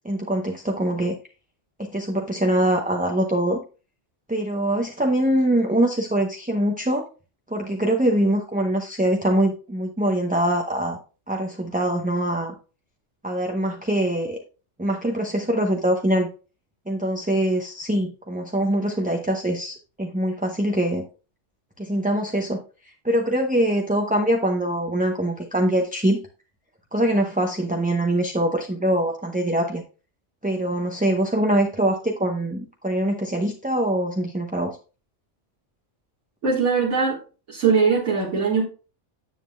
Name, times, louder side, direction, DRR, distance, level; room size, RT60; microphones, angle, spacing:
voice 1, 0.0-1.2 1.8-3.6 4.3-7.1 7.5-11.0 11.3-12.5 13.2-14.4 14.8-16.3 16.9-21.0 21.8-22.6 23.0-26.2 26.9-29.8 30.4-34.8, right 1 dB, 10° right, 2 dB, 0.6 m, -23 dB
voice 2, 36.4-37.2 37.5-38.6, right 5 dB, 75° right, -3 dB, 2.0 m, -21 dB
9.7 x 7.4 x 2.2 m, 0.34 s
omnidirectional pair, 1.3 m